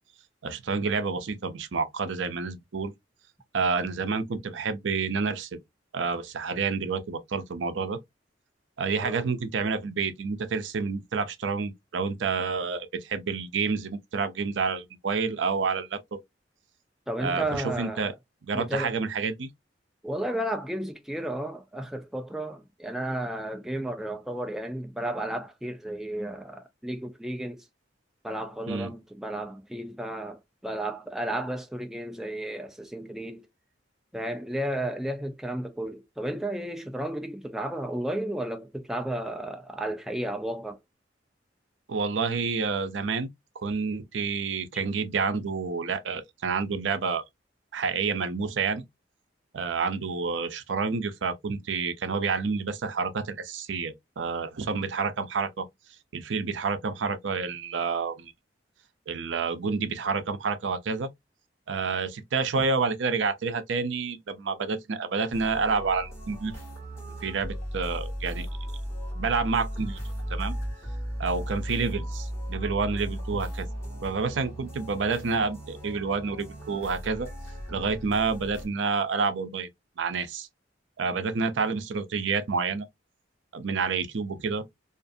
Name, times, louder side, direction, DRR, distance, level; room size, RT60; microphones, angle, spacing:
voice 1, 0.4-2.9 3.5-5.5 5.9-8.0 8.8-16.2 17.2-18.1 18.4-19.5 28.7-28.9 41.9-43.3 43.6-47.2 47.7-48.8 49.5-55.7 56.1-58.3 59.1-61.1 61.7-66.5 67.2-68.5 69.1-70.0 70.3-70.6 71.2-73.7 74.0-77.3 77.7-79.7 80.0-80.5 81.0-82.9 83.5-84.6, right 4 dB, 75° right, 0.5 m, -29 dB
voice 2, 17.1-18.1 18.5-19.0 20.0-27.6 28.2-33.5 34.1-40.8, right 1 dB, ahead, 0.3 m, -33 dB
sound 1, 65.3-78.7, equal, 15° left, 1.4 m, -36 dB
2.5 x 2.5 x 2.5 m
head